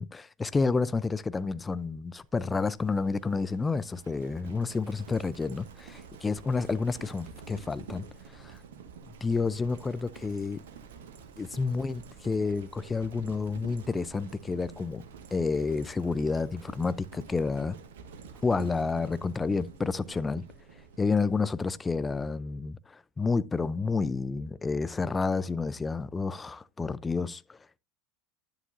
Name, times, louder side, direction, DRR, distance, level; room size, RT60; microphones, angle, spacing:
voice 1, 0.0-8.1 8.3-8.6 9.2-10.6 11.4-15.0 15.3-17.8 18.4-20.4 21.0-27.8, left 4 dB, 20° left, 0.6 m, -30 dB
Livestock farm animals working animals, 2.2-21.8, right 6 dB, 70° right, 1.4 m, -49 dB
11.0 x 7.3 x 2.6 m
figure-of-eight pair, 75°, 0 cm